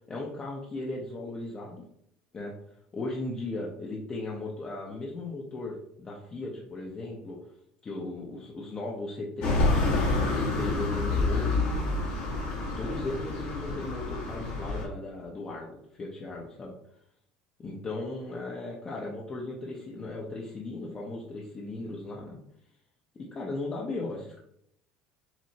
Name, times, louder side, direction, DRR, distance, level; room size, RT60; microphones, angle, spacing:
voice 1, 0.0-1.8 2.3-2.5 2.9-7.4 7.8-11.5 12.8-16.7 17.6-22.4 23.3-24.4, left 2 dB, 25° left, -3 dB, 0.7 m, -37 dB
sound 1, 9.4-14.9, left 3 dB, 70° left, 1.5 m, -28 dB
5.8 x 2.1 x 2.8 m, 0.74 s
supercardioid pair, 115°, 3 cm